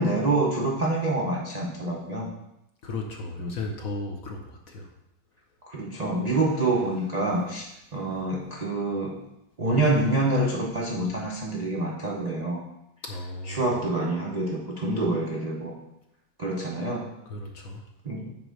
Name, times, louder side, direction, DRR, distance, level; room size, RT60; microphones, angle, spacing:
voice 1, 0.0-2.3 3.4-3.6 5.6-9.2 9.6-12.6 13.5-15.8 16.4-17.1 18.0-18.3, right 2 dB, 75° right, -3 dB, 0.3 m, -27 dB
voice 2, 2.8-4.9 8.0-8.2 13.0-13.8 17.3-17.9, left 2 dB, 60° left, 2 dB, 0.9 m, -35 dB
6.0 x 4.4 x 6.3 m, 0.87 s
omnidirectional pair, 2.1 m